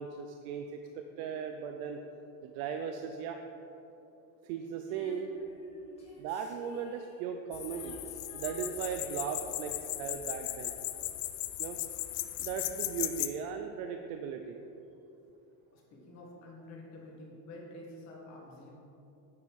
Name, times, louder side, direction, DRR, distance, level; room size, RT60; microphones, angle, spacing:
voice 1, 0.0-2.0 2.4-3.4 4.4-5.3 6.2-8.0 8.3-10.7 11.6-11.8 12.4-14.6, right 7 dB, 80° right, 5 dB, 0.7 m, -37 dB
Female singing, 4.9-11.8 13.0-13.1, left 1 dB, 15° left, 1.5 m, -54 dB
sound 1, 7.5-13.3, left 15 dB, 65° left, 0.6 m, -37 dB
voice 2, 15.7-18.7, left 1 dB, 40° left, -2 dB, 1.6 m, -49 dB
9.3 x 5.5 x 4.8 m, 2.9 s
cardioid pair, 175°, 42 cm